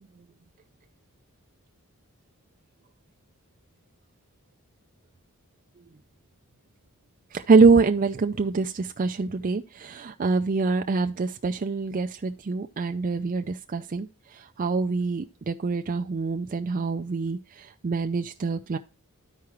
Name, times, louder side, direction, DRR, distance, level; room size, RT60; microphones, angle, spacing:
voice 1, 7.3-18.8, right 4 dB, 40° right, 6 dB, 0.4 m, -25 dB
13.0 x 4.8 x 3.0 m, 0.30 s
head